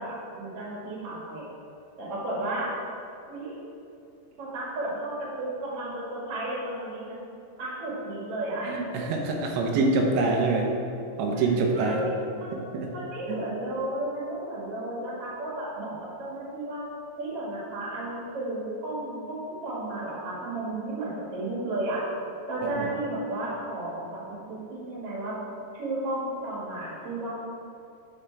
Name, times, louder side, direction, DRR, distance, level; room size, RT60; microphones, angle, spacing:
voice 1, 0.0-1.5 2.0-2.7 3.3-3.5 4.4-7.2 7.6-8.7 9.0-9.1 11.3-11.4 11.7-12.6 12.9-15.9 16.2-16.8 17.2-22.0 22.5-25.4 25.7-27.3, right 1 dB, 45° right, -6 dB, 2.0 m, -33 dB
voice 2, 8.6-10.7 11.2-12.0 12.5-12.9 13.3-13.4 22.6-22.9, right 3 dB, 85° right, 1 dB, 3.2 m, -25 dB
9.8 x 5.7 x 3.4 m, 2.6 s
omnidirectional pair, 5.2 m